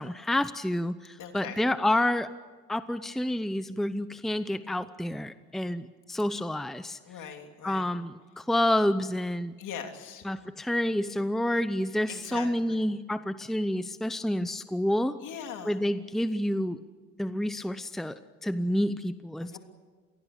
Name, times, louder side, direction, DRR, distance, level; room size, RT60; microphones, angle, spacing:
voice 1, 0.0-2.3 2.7-7.0 7.6-9.5 10.2-15.1 15.6-16.8 17.2-19.6, left 1 dB, ahead, 12 dB, 0.8 m, -29 dB
voice 2, 1.2-1.7 7.1-7.9 9.6-10.2 12.1-12.8 15.2-15.8 19.4-19.6, left 8 dB, 85° left, 4 dB, 3.2 m, -41 dB
27.5 x 20.5 x 6.8 m, 1.4 s
cardioid pair, 90°, 30 cm